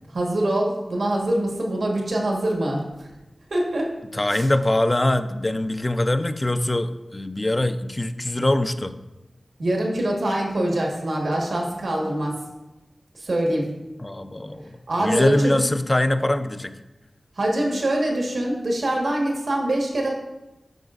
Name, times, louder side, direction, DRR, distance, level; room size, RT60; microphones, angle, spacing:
voice 1, 0.1-3.1 3.5-3.9 4.3-4.5 9.6-12.4 13.1-13.7 14.9-15.6 17.4-20.1, right 1 dB, 85° right, -1 dB, 1.4 m, -24 dB
voice 2, 4.1-8.9 14.0-16.8, left 1 dB, 30° left, 10 dB, 0.4 m, -23 dB
9.0 x 6.0 x 2.5 m, 1.0 s
wide cardioid pair, 65°, 0 cm